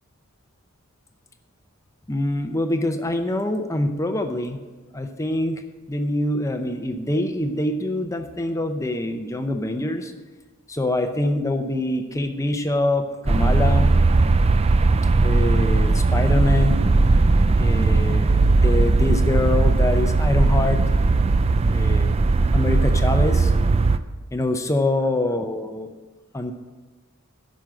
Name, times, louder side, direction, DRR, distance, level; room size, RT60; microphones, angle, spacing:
voice 1, 2.1-4.6 4.9-5.6 5.9-10.1 10.7-14.0 15.2-16.8 17.6-20.8 21.7-22.1 22.5-23.5 24.3-25.9 26.3-26.5, left 1 dB, 15° left, 7 dB, 0.6 m, -24 dB
sound 1, 13.3-24.0, right 3 dB, 25° right, 0.4 m, -18 dB
10.5 x 6.4 x 7.5 m, 1.3 s
head